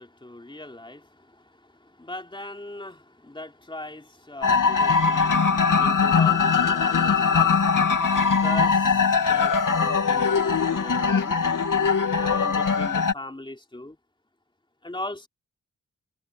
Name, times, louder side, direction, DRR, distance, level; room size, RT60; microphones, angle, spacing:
voice 1, 0.0-7.8 8.4-9.0 9.3-11.4 12.1-14.0 14.8-15.3, left 2 dB, 15° left, 3.0 m, -39 dB
sound 1, 4.4-13.1, left 5 dB, 80° left, 2.5 m, -21 dB
wide cardioid pair, 90°, 32 cm